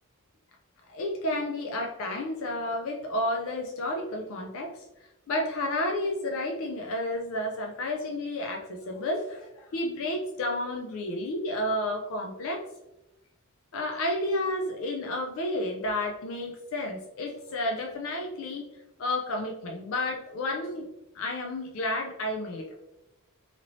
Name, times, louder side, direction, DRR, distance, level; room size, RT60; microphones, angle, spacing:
voice 1, 0.9-4.8 5.3-12.6 13.7-18.7 19.0-20.9 21.1-22.7, left 1 dB, 65° left, 1 dB, 0.4 m, -31 dB
2.9 x 2.6 x 2.9 m, 0.95 s
head